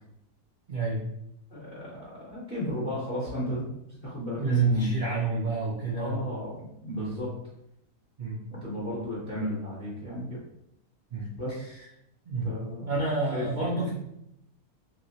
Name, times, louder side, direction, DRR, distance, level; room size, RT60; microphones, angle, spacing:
voice 1, 0.7-1.0 4.4-6.3 7.0-7.2 8.2-8.4 11.1-11.3 11.6-11.9 12.2-13.9, right 2 dB, 75° right, -5 dB, 0.4 m, -29 dB
voice 2, 1.5-3.7 4.0-4.9 6.0-6.5 6.8-7.3 8.5-10.4 11.4-11.8 12.4-13.4 13.7-13.9, left 1 dB, 45° left, -9 dB, 0.9 m, -34 dB
3.0 x 2.9 x 2.7 m, 0.79 s
omnidirectional pair, 1.6 m